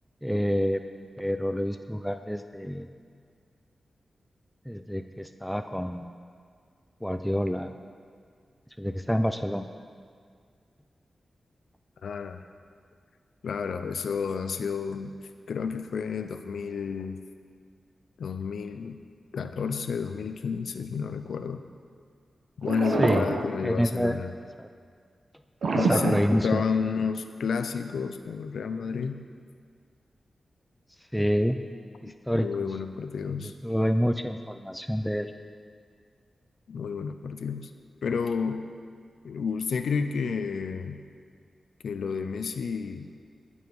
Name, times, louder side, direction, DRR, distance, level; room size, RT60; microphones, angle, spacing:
voice 1, 0.2-0.8 1.2-2.9 4.7-6.1 7.0-7.7 8.8-9.7 23.0-23.3 23.6-24.2 24.6-24.7 25.7-26.6 31.1-31.6 32.0-32.5 33.3-35.3, equal, ahead, 8 dB, 0.4 m, -27 dB
voice 2, 12.0-12.4 13.4-15.1 15.5-17.2 18.2-19.0 19.3-21.6 22.6-24.3 25.7-29.2 32.0-33.5 36.7-37.7 38.0-38.7 39.2-41.0 41.8-43.1, left 6 dB, 85° left, 8 dB, 0.5 m, -31 dB
sound 1, 22.6-23.9 25.6-26.9, right 3 dB, 80° right, 1.0 m, -27 dB
18.0 x 7.1 x 4.7 m, 2.1 s
wide cardioid pair, 85°, 0 cm